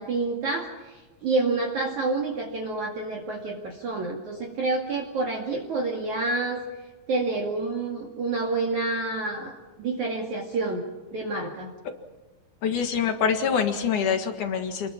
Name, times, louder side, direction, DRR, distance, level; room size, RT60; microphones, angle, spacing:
voice 1, 0.0-6.6 7.1-10.8 11.1-11.7, right 3 dB, 50° right, -1 dB, 3.2 m, -28 dB
voice 2, 12.6-14.9, left 7 dB, 55° left, 6 dB, 2.6 m, -25 dB
28.5 x 21.5 x 5.9 m, 1.2 s
omnidirectional pair, 5.2 m